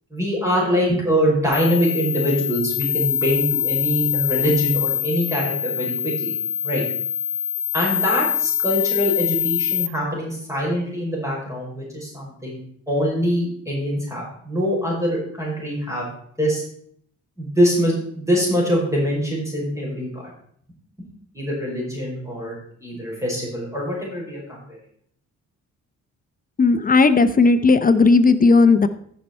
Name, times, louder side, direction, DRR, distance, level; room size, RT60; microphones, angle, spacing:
voice 1, 0.1-6.3 6.6-6.8 7.7-12.6 12.9-16.1 16.4-16.6 17.4-20.2 21.3-24.8, equal, 10° right, -4 dB, 5.2 m, -23 dB
sound 1, 1.5-9.9, left 9 dB, 65° left, 0.8 m, -24 dB
voice 2, 26.6-28.9, left 4 dB, 30° left, 12 dB, 0.7 m, -15 dB
14.5 x 5.6 x 4.4 m, 0.65 s
cardioid pair, 90°, 30 cm